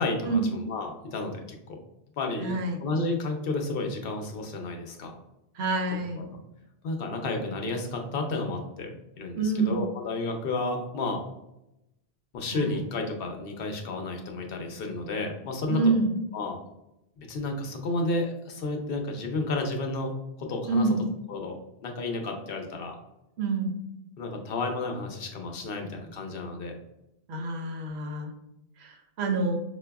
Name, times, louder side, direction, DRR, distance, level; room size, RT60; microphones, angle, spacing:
voice 1, 0.0-1.8 2.2-5.2 6.2-6.3 6.8-11.2 12.3-15.9 16.3-16.6 17.2-20.1 20.4-20.9 21.3-23.0 24.2-26.7, left 2 dB, 65° left, 3 dB, 0.8 m, -32 dB
voice 2, 2.4-2.8 5.6-6.2 9.3-9.8 12.5-12.8 15.7-16.1 20.7-21.0 23.4-23.7 27.3-28.3 28.8-29.6, right 3 dB, 85° right, 4 dB, 0.9 m, -27 dB
4.7 x 2.2 x 2.2 m, 0.88 s
omnidirectional pair, 1.1 m